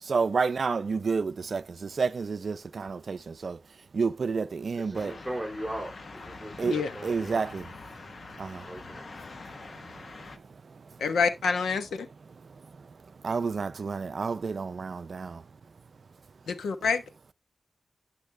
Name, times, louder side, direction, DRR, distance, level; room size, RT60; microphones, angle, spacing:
voice 1, 0.0-3.6 3.9-5.2 6.6-7.7 8.4-8.7 9.5-11.0 12.4-13.0 13.2-15.4, right 5 dB, 60° right, 0.5 m, -31 dB
voice 2, 4.8-7.5 8.6-9.1, right 1 dB, ahead, 2.6 m, -38 dB
sound 1, 4.9-10.4, left 3 dB, 55° left, 1.0 m, -45 dB
voice 3, 11.0-12.1 16.6-17.0, left 5 dB, 90° left, 1.0 m, -26 dB
12.0 x 8.1 x 2.2 m
cardioid pair, 55°, 0 cm